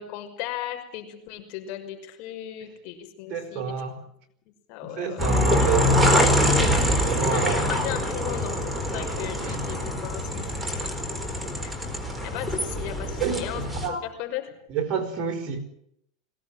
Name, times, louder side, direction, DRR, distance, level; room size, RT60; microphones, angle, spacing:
voice 1, 0.0-3.7 4.7-5.4 7.0-10.5 11.6-11.7 12.2-13.6 13.9-14.5, left 12 dB, 55° left, 5 dB, 5.9 m, -36 dB
voice 2, 3.3-4.0 4.8-6.3 7.0-7.6 9.4-9.6 13.2-14.0 14.7-15.6, right 6 dB, 40° right, 3 dB, 4.7 m, -29 dB
sound 1, 5.2-13.9, left 1 dB, 5° right, 4.4 m, -24 dB
22.0 x 17.5 x 9.2 m, 0.74 s
supercardioid pair, 130°, 3 cm